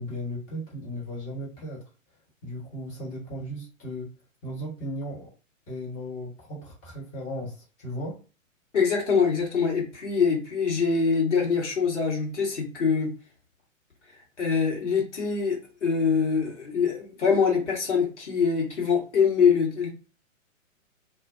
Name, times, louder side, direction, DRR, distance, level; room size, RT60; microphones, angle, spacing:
voice 1, 0.0-1.9 2.4-4.1 4.4-5.3 5.7-8.2, equal, 20° left, -4 dB, 1.0 m, -36 dB
voice 2, 8.7-13.1 14.4-19.9, left 6 dB, 60° left, -1 dB, 1.2 m, -24 dB
2.4 x 2.2 x 2.4 m, 0.34 s
figure-of-eight pair, 115°, 40 cm